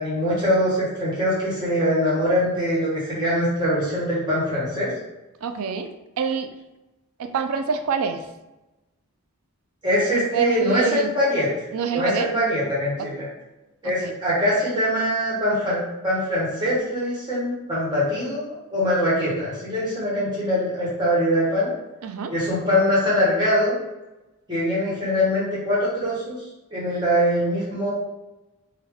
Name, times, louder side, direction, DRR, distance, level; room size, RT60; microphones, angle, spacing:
voice 1, 0.0-4.9 9.8-11.5 11.9-13.3 13.8-21.7 22.3-23.7 24.5-26.4 26.7-27.9, equal, 20° right, -8 dB, 1.2 m, -23 dB
voice 2, 5.4-5.9 6.2-6.5 7.2-8.2 10.1-11.1 11.7-12.3 13.0-13.1 14.0-14.1 22.0-22.3, right 6 dB, 75° right, 7 dB, 0.4 m, -26 dB
3.4 x 2.2 x 3.5 m, 1.0 s
head